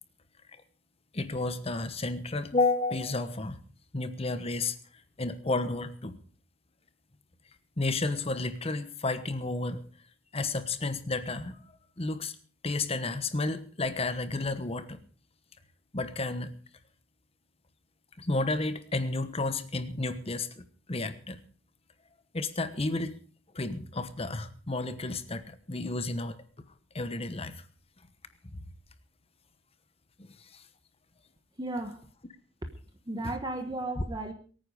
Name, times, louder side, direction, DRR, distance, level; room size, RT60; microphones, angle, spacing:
voice 1, 1.1-3.6 3.9-4.8 5.2-6.2 7.8-9.8 10.3-11.6 12.0-12.3 12.6-15.0 15.9-16.6 18.2-21.4 22.3-23.1 23.5-26.4 26.9-27.6 28.5-28.6 30.2-30.6 33.2-33.3 34.0-34.1, left 2 dB, 30° left, 12 dB, 1.1 m, -31 dB
voice 2, 31.6-32.0 33.1-34.3, right 2 dB, 25° right, 6 dB, 1.2 m, -34 dB
23.0 x 9.5 x 5.0 m, 0.42 s
head